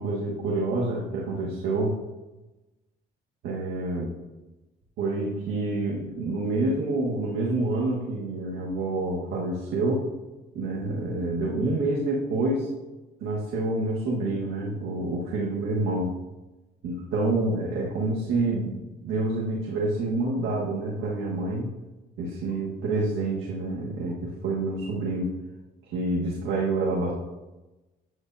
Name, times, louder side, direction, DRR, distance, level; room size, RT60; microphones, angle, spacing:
voice 1, 0.0-2.0 3.4-4.2 5.0-10.1 10.5-12.7 13.2-16.1 16.8-18.8 19.0-21.7 22.2-25.3 25.9-27.1, right 2 dB, 85° right, -4 dB, 1.6 m, -27 dB
9.7 x 8.0 x 2.7 m, 1.1 s
cardioid pair, 90°, 20 cm